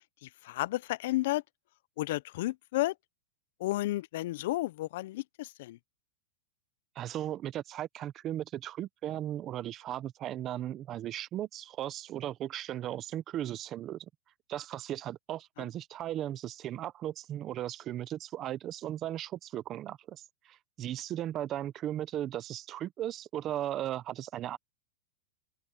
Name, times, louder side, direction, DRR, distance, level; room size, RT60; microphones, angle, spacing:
voice 1, 0.2-1.4 2.0-2.9 3.6-5.8, left 17 dB, 60° left, 0.4 m, -32 dB
voice 2, 7.0-14.1 14.5-24.6, right 12 dB, 30° right, 0.7 m, -37 dB
open air
supercardioid pair, 155°, 0 cm